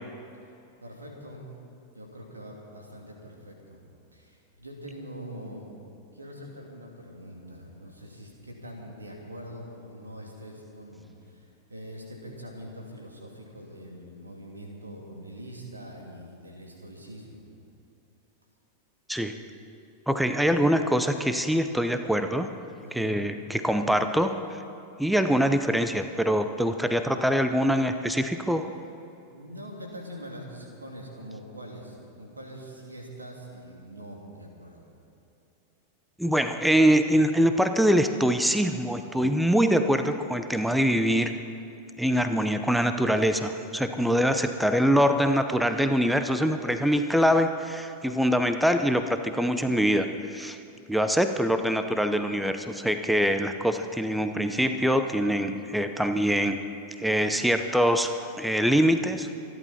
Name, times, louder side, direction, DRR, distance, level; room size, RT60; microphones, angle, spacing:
voice 1, 0.8-1.5 1.9-3.8 4.1-17.5 22.8-23.1 29.3-34.8 43.9-44.2, equal, 80° right, 0 dB, 2.9 m, -43 dB
voice 2, 20.1-22.5 22.9-24.6 25.0-28.7 36.2-41.3 42.0-50.6 50.9-56.6 57.0-59.3, equal, ahead, 8 dB, 0.7 m, -24 dB
26.5 x 11.0 x 4.3 m, 2.8 s
figure-of-eight pair, 90°, 0 cm